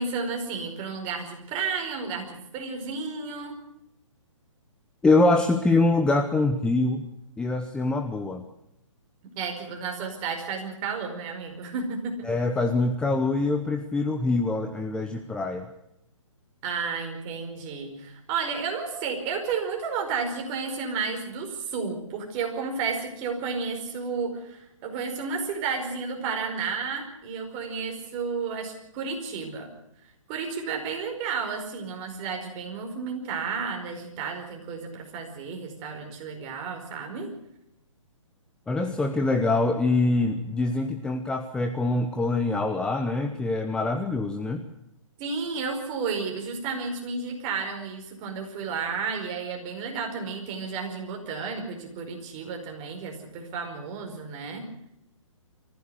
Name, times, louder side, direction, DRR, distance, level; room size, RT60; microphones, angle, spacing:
voice 1, 0.0-3.6 9.4-12.3 16.6-29.7 30.3-37.3 45.2-54.7, right 5 dB, 25° right, 3 dB, 5.0 m, -32 dB
voice 2, 5.0-7.1 7.4-8.4 12.3-15.7 38.7-44.6, left 2 dB, 5° left, 6 dB, 0.9 m, -24 dB
23.5 x 15.5 x 8.1 m, 0.82 s
figure-of-eight pair, 135°, 17 cm